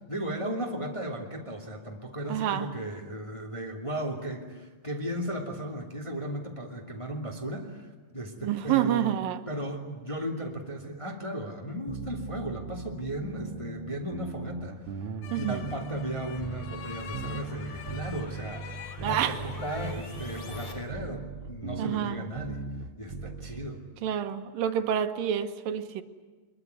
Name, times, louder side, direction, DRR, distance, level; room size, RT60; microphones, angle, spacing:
voice 1, 0.1-9.2 9.5-22.7 23.0-23.8, right 1 dB, 10° left, 2.1 m, -36 dB
voice 2, 2.3-2.7 8.4-9.4 15.3-15.6 19.0-19.4 21.8-22.2 24.0-26.0, right 10 dB, 80° right, 2.8 m, -28 dB
sound 1, 11.9-23.7, right 3 dB, 55° right, 1.7 m, -39 dB
sound 2, 14.3-20.7, left 1 dB, 25° left, 4.2 m, -50 dB
sound 3, 15.2-20.8, left 8 dB, 65° left, 1.7 m, -46 dB
23.5 x 22.5 x 9.6 m
omnidirectional pair, 4.0 m